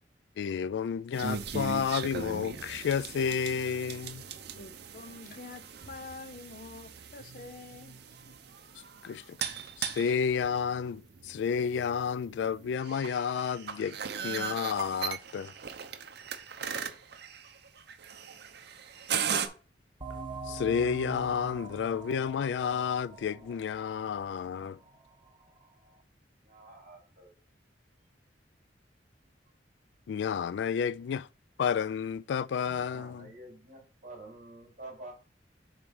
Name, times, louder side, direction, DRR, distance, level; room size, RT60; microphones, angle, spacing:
voice 1, 0.4-4.2 9.0-15.5 20.5-24.8 30.1-31.3 31.6-33.3, left 7 dB, 75° left, 0.3 m, -31 dB
sound 1, 1.1-19.5, right 7 dB, 65° right, 0.8 m, -39 dB
voice 2, 4.5-8.3, left 3 dB, 50° left, 0.8 m, -47 dB
sound 2, 20.0-25.3, right 3 dB, 25° right, 0.9 m, -44 dB
voice 3, 26.4-27.3 32.6-35.1, right 2 dB, 45° right, 4.3 m, -48 dB
7.8 x 3.5 x 5.5 m
head